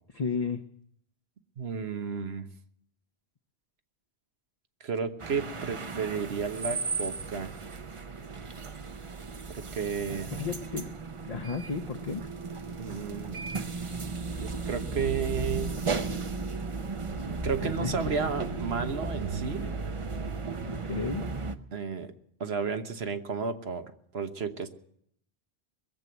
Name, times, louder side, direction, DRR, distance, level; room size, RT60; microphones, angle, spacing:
voice 1, 0.1-0.6 10.3-10.9 11.2-12.3 17.6-18.1 20.7-21.3, left 5 dB, 40° left, 4 dB, 0.8 m, -33 dB
voice 2, 1.6-2.5 4.8-7.6 9.5-10.3 12.7-13.4 14.4-15.8 17.4-19.7 21.7-22.1 22.4-24.7, right 5 dB, 80° right, 8 dB, 1.4 m, -33 dB
sound 1, 5.2-21.6, right 4 dB, 35° right, 0.7 m, -35 dB
22.0 x 7.7 x 8.0 m, 0.68 s
omnidirectional pair, 1.0 m